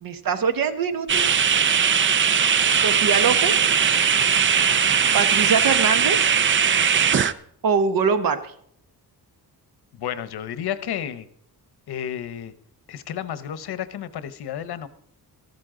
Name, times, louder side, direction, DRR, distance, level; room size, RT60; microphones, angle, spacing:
voice 1, 0.0-1.2 2.8-3.7 5.1-6.3 7.6-8.5, right 6 dB, 60° right, 10 dB, 1.2 m, -23 dB
sound 1, 1.1-7.3, right 7 dB, 30° right, 0.4 m, -19 dB
voice 2, 9.9-11.3 11.9-12.5 12.9-14.9, left 9 dB, 75° left, 14 dB, 1.0 m, -31 dB
14.0 x 13.0 x 3.8 m, 0.66 s
wide cardioid pair, 170°, 38 cm